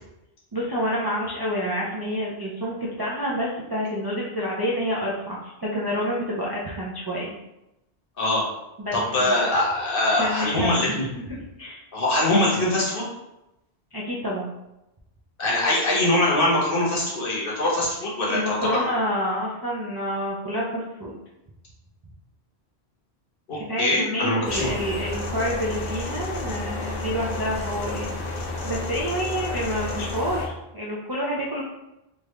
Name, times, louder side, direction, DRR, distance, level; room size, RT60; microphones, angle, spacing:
voice 1, 0.5-7.4 8.8-9.4 10.1-10.8 11.3-11.8 13.9-14.5 18.3-21.1 23.6-31.6, equal, 35° right, -6 dB, 0.4 m, -28 dB
voice 2, 8.9-11.0 11.9-13.0 15.4-18.9 23.5-24.7, left 1 dB, 60° left, -5 dB, 1.2 m, -23 dB
sound 1, 24.4-30.5, left 2 dB, 90° left, 1.0 m, -31 dB
3.3 x 2.4 x 3.2 m, 0.91 s
omnidirectional pair, 1.1 m